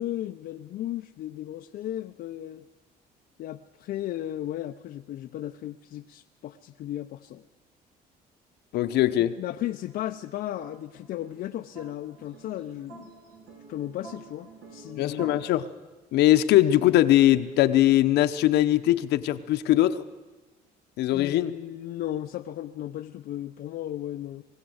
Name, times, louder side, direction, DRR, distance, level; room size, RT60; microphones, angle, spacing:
voice 1, 0.0-2.7 3.4-7.4 9.2-13.1 13.7-15.3 21.1-24.4, left 13 dB, 65° left, 0.7 m, -35 dB
voice 2, 8.7-9.3 15.0-15.6 16.1-20.0 21.0-21.5, left 13 dB, 80° left, 1.0 m, -21 dB
sound 1, 9.9-15.6, right 3 dB, 80° right, 5.4 m, -49 dB
22.0 x 16.0 x 8.0 m
cardioid pair, 110°, 17 cm